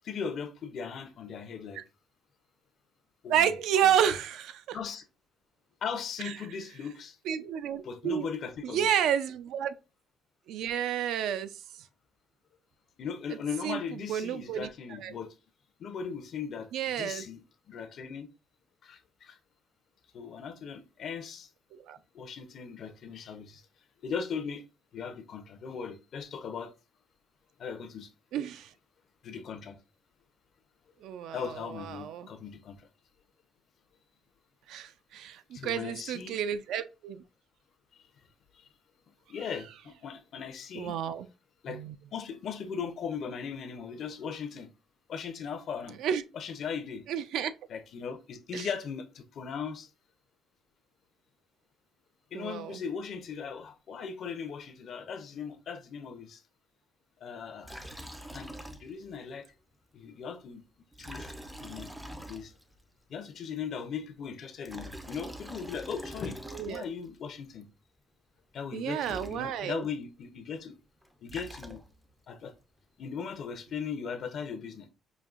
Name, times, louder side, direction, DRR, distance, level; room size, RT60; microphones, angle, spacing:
voice 1, 0.0-1.8 3.2-3.5 3.8-3.9 4.7-5.0 5.8-7.2 7.8-8.9 13.0-15.3 15.8-16.7 17.0-17.4 17.7-18.3 18.8-19.4 20.1-21.5 22.1-23.6 24.0-24.6 24.9-26.7 27.6-28.1 29.2-29.8 31.3-32.8 35.5-36.4 39.3-41.0 41.6-41.8 42.1-44.7 45.1-46.0 46.3-47.1 47.7-49.9 52.3-56.4 57.2-57.7 58.3-58.5 58.8-59.5 59.9-60.6 61.0-61.3 61.6-61.9 62.3-62.5 63.1-66.4 66.7-67.7 68.5-70.8 71.2-71.8 72.3-72.5 73.0-74.9, left 6 dB, 45° left, 0.5 m, -38 dB
voice 2, 3.3-4.8 6.2-6.3 7.3-8.3 8.6-9.7 10.5-11.9 13.3-13.4 13.6-14.7 15.0-15.1 16.7-17.2 21.7-22.0 28.3-28.7 31.0-32.3 34.7-37.2 40.7-41.3 41.7-41.9 46.0-46.2 47.1-47.5 48.5-48.7 52.3-52.8 66.5-66.8 68.7-69.8, right 9 dB, 75° right, 0.4 m, -31 dB
Liquid, 57.6-59.2 59.4-59.5 60.9-62.8 64.4-67.1 68.7-68.8 69.0-69.9 71.0-72.1, equal, 5° right, 0.4 m, -44 dB
5.1 x 2.6 x 2.4 m
cardioid pair, 175°, 0 cm